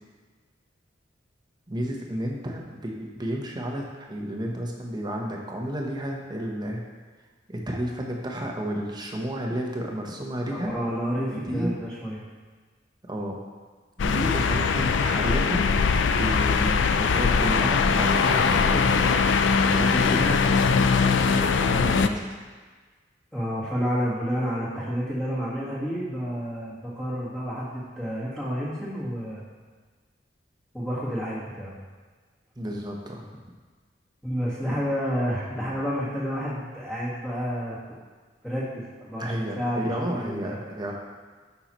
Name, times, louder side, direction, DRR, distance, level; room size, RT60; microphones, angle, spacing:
voice 1, 1.7-6.8 7.5-10.7 11.3-11.8 13.1-13.4 14.0-15.7 16.2-19.2 19.7-22.3 32.6-33.4 39.2-40.9, equal, 25° right, 0 dB, 0.9 m, -31 dB
voice 2, 10.5-12.2 23.3-29.4 30.7-31.7 34.2-37.8 38.4-40.6, equal, 5° left, -8 dB, 1.6 m, -30 dB
sound 1, 14.0-22.1, left 5 dB, 75° left, 0.4 m, -21 dB
9.1 x 5.8 x 3.0 m, 1.4 s
head